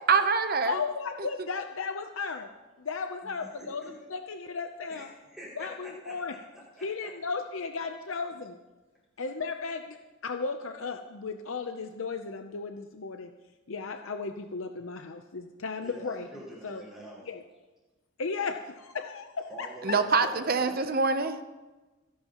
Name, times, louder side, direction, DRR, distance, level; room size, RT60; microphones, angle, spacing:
voice 1, 0.1-0.8 19.8-21.4, right 4 dB, 45° right, 10 dB, 0.8 m, -25 dB
voice 2, 0.6-2.5 2.8-5.1 5.6-6.4 6.8-8.6 9.2-10.0 10.2-13.3 13.7-16.3 16.6-16.8 17.2-17.4 18.2-20.0, left 4 dB, 70° left, 5 dB, 0.7 m, -35 dB
voice 3, 4.9-6.1 6.8-7.1 15.8-17.2 19.5-20.8, equal, ahead, -7 dB, 5.8 m, -46 dB
27.0 x 11.0 x 3.0 m, 1.2 s
head